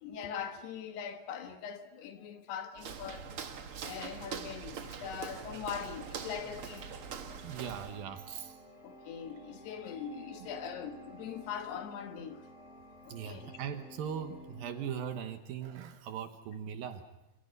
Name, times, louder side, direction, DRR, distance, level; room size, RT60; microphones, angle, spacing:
voice 1, 0.0-3.3 3.8-6.9 8.8-12.4 13.1-13.5, left 8 dB, 75° left, 3.4 m, -41 dB
Walk footsteps, 2.7-8.0, right 6 dB, 85° right, 1.2 m, -43 dB
sound 1, 5.0-15.2, equal, 35° left, 5.5 m, -53 dB
voice 2, 7.4-8.6 10.4-10.5 13.1-17.1, right 8 dB, 70° right, 2.7 m, -40 dB
28.0 x 27.0 x 5.4 m
omnidirectional pair, 4.8 m